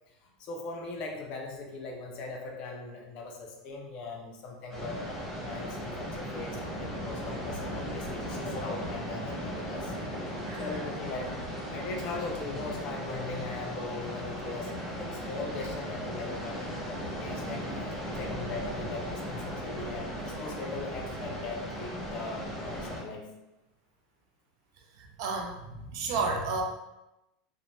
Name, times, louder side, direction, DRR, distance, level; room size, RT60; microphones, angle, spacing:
voice 1, 0.2-9.9 10.6-11.4 11.7-17.6 18.1-23.3, left 3 dB, 30° left, 1 dB, 0.4 m, -40 dB
sound 1, 4.7-23.0, equal, 5° left, 0.8 m, -37 dB
voice 2, 10.4-10.8 25.2-26.6, right 4 dB, 55° right, 2 dB, 0.4 m, -32 dB
3.1 x 2.0 x 2.6 m, 0.96 s
supercardioid pair, 180°, 3 cm